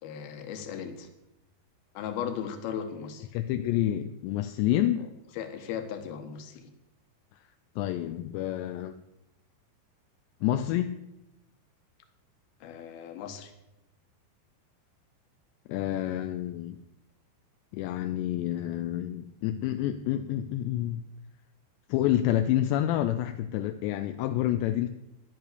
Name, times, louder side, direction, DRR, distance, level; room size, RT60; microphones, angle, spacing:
voice 1, 0.0-1.1 1.9-3.3 5.4-6.7 12.6-13.5, left 8 dB, 65° left, 7 dB, 3.1 m, -37 dB
voice 2, 3.3-5.1 7.8-9.0 10.4-10.9 15.7-16.8 17.7-21.0 21.9-24.9, left 12 dB, 85° left, 8 dB, 2.8 m, -28 dB
13.5 x 10.5 x 6.8 m, 0.90 s
omnidirectional pair, 5.1 m